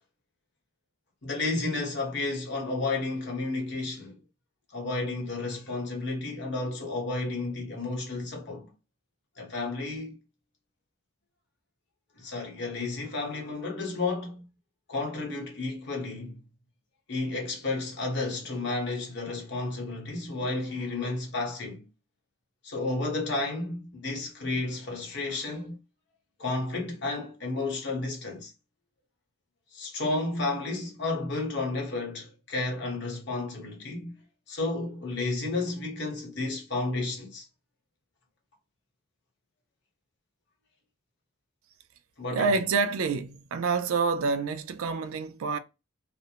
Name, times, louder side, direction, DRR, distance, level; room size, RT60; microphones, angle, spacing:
voice 1, 1.2-4.2 4.7-8.7 9.4-10.2 12.1-14.5 14.9-16.4 17.1-21.9 22.6-25.8 26.4-28.5 29.7-34.2 34.5-37.4 42.2-42.5, left 2 dB, 50° left, 0.9 m, -32 dB
voice 2, 42.3-45.6, right 4 dB, 70° right, 0.4 m, -27 dB
2.5 x 2.0 x 2.8 m
head